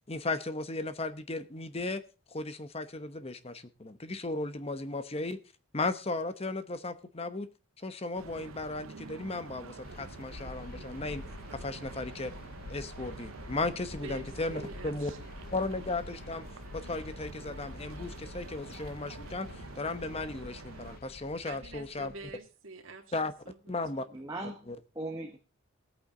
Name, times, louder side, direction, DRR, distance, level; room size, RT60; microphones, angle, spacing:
voice 1, 0.1-2.0 2.3-5.4 5.7-7.5 7.8-11.2 11.5-12.3 12.7-15.1 15.5-16.4 16.7-22.1 23.1-23.3 23.7-24.1 24.7-24.8, left 2 dB, 30° left, 0.9 m, -35 dB
sound 1, 8.2-21.0, right 5 dB, 85° right, 0.6 m, -48 dB
sound 2, 9.8-22.3, left 3 dB, 45° left, 0.5 m, -47 dB
voice 2, 14.0-15.3 21.4-24.3, right 3 dB, 70° right, 2.1 m, -48 dB
voice 3, 24.1-25.4, right 2 dB, 15° right, 1.2 m, -39 dB
19.5 x 8.6 x 3.8 m
head